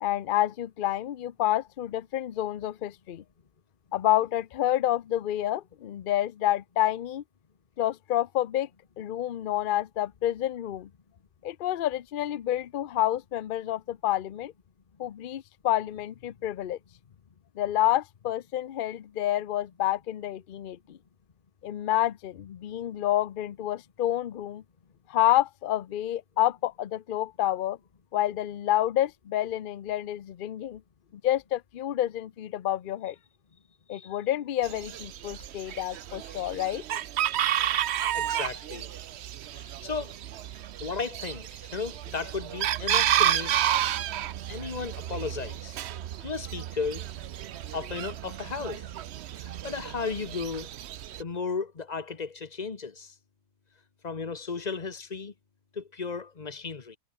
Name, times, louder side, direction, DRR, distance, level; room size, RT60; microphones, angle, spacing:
voice 1, 0.0-3.2 3.9-7.2 7.8-8.7 9.0-10.9 11.4-14.5 15.0-16.8 17.6-21.0 21.6-24.6 25.1-27.8 28.1-30.8 31.2-33.2 33.9-36.8, left 13 dB, 70° left, 0.5 m, -28 dB
Chicken rooster, 34.6-51.2, right 11 dB, 65° right, 0.6 m, -31 dB
voice 2, 38.1-38.9 39.5-40.2 40.8-43.5 44.5-45.8 46.2-47.1 47.7-48.9 49.4-50.7 51.2-53.1 54.0-55.3 55.7-57.0, left 5 dB, 30° left, 1.1 m, -35 dB
omnidirectional pair, 1.7 m